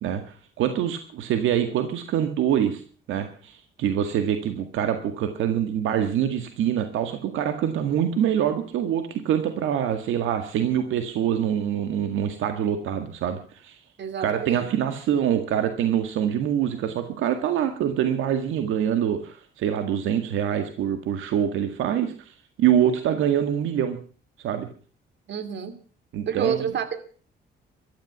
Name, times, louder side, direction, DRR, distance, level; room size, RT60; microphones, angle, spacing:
voice 1, 0.0-2.8 3.1-13.8 14.2-24.0 24.4-24.7 26.1-26.7, right 9 dB, 85° right, 8 dB, 1.9 m, -25 dB
voice 2, 14.0-14.7 25.3-25.8 26.3-27.0, right 7 dB, 65° right, 11 dB, 2.7 m, -29 dB
14.0 x 13.0 x 7.3 m, 0.42 s
cardioid pair, 90°, 20 cm